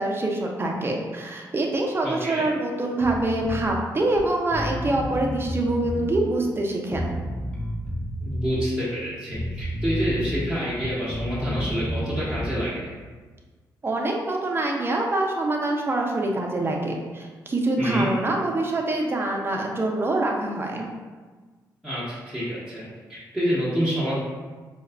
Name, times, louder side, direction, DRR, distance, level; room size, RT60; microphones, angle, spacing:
voice 1, 0.0-7.1 13.8-20.9, right 2 dB, 30° right, 0 dB, 0.6 m, -25 dB
voice 2, 2.0-2.5 8.2-12.9 17.8-18.1 21.8-22.8 23.1-24.1, equal, ahead, -12 dB, 1.2 m, -27 dB
Bass guitar, 3.0-3.7 4.2-4.3 4.5-6.1 6.9-8.5 9.3-10.4 10.7-12.6, equal, 15° left, 0.7 m, -30 dB
4.5 x 2.4 x 2.2 m, 1.4 s
cardioid pair, 65°, 8 cm